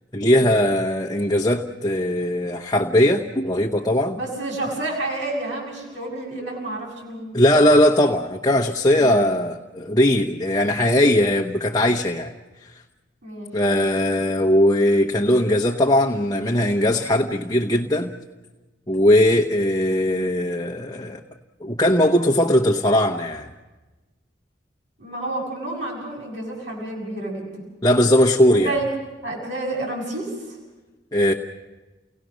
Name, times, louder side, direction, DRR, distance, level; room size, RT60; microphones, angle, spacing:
voice 1, 0.1-4.2 7.3-12.3 13.5-18.1 18.9-21.2 21.6-23.5 27.8-28.7 31.1-31.3, left 1 dB, 20° left, 2 dB, 1.0 m, -19 dB
voice 2, 4.1-7.3 8.9-9.2 13.2-13.5 25.0-27.6 28.5-28.9 29.2-30.6, right 2 dB, 80° right, -3 dB, 6.9 m, -30 dB
30.0 x 18.0 x 6.4 m, 1.2 s
head